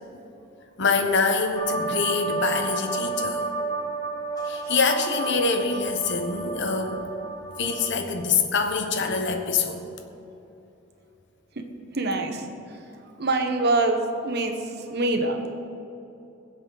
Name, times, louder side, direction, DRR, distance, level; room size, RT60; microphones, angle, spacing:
voice 1, 0.8-3.5 4.4-7.1 7.6-9.8, left 4 dB, 65° left, 5 dB, 1.2 m, -25 dB
sound 1, 1.6-7.9, right 3 dB, 20° left, 1.5 m, -31 dB
voice 2, 11.9-12.4 13.2-14.6 14.9-15.5, right 2 dB, 55° right, 4 dB, 1.3 m, -24 dB
21.5 x 8.1 x 4.1 m, 2.9 s
head